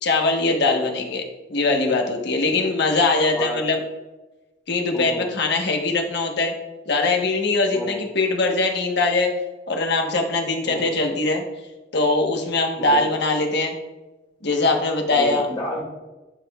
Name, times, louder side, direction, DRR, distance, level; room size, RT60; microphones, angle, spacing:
voice 1, 0.0-3.8 4.7-6.5 6.9-9.3 9.7-11.4 11.9-13.7 14.4-15.4, left 3 dB, 65° left, 2 dB, 1.1 m, -21 dB
voice 2, 0.7-1.1 2.5-2.7 3.2-3.6 4.9-5.3 7.7-8.0 10.6-10.9 12.8-13.1 15.1-15.8, left 1 dB, 25° left, -4 dB, 2.3 m, -31 dB
12.0 x 5.0 x 2.3 m, 1.1 s
head